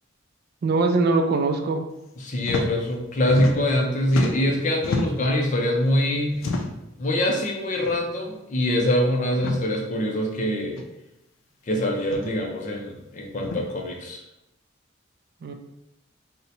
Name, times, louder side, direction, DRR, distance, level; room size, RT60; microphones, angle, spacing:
voice 1, 0.6-1.8 15.4-15.5, right 3 dB, 55° right, 5 dB, 0.3 m, -22 dB
voice 2, 2.2-6.6 7.0-10.8 11.7-14.2, left 1 dB, 40° left, 1 dB, 0.5 m, -24 dB
sound 1, 2.4-2.7 3.0-3.8 4.1-5.3 6.3-6.9 7.8-8.0 8.3-8.4 9.3-9.6 10.7-10.8 12.0-12.3 13.4-13.6, left 2 dB, 90° left, 0.4 m, -30 dB
2.7 x 2.1 x 4.0 m, 0.89 s
head